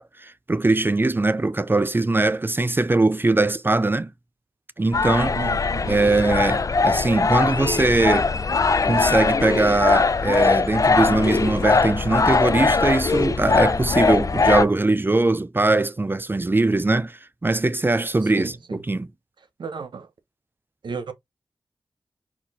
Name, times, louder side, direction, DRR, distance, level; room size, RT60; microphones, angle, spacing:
voice 1, 0.0-4.1 4.8-5.4 5.9-8.3 8.8-19.1, right 2 dB, 25° right, 0.5 m, -21 dB
sound 1, 4.9-14.6, left 4 dB, 45° left, 0.5 m, -21 dB
voice 2, 5.3-6.2 18.4-18.8 19.6-20.1 20.8-21.1, right 5 dB, 80° right, 1.0 m, -33 dB
4.5 x 4.0 x 2.8 m
cardioid pair, 45°, 8 cm